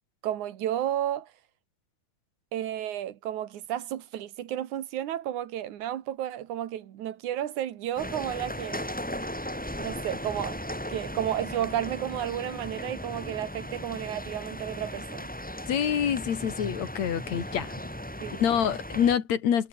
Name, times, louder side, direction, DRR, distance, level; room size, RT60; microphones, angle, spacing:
voice 1, 0.2-1.3 2.5-8.8 9.8-10.6 10.9-15.3 18.2-18.4, right 11 dB, 85° right, 2.9 m, -32 dB
sound 1, 8.0-19.2, equal, 5° left, 2.0 m, -37 dB
voice 2, 15.7-17.7 18.4-19.7, left 8 dB, 70° left, 3.2 m, -26 dB
omnidirectional pair, 3.3 m